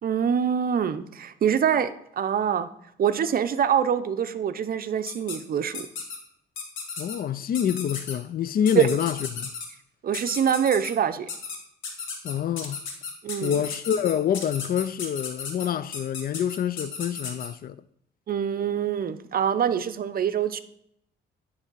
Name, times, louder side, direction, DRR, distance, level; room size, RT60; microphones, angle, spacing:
voice 1, 0.0-2.7 3.0-5.9 8.8-8.9 10.0-11.3 13.2-13.6 18.3-20.6, right 8 dB, 50° right, 0.6 m, -25 dB
sound 1, 5.1-5.4 5.7-6.2 6.6-7.2 7.5-8.1 8.7-9.7 10.1-10.9 11.3-11.6 11.8-17.5, left 5 dB, 85° left, 1.5 m, -34 dB
voice 2, 7.0-9.5 12.2-12.8 13.4-17.8, left 9 dB, 50° left, 0.4 m, -27 dB
9.8 x 3.3 x 5.4 m
cardioid pair, 90°, 20 cm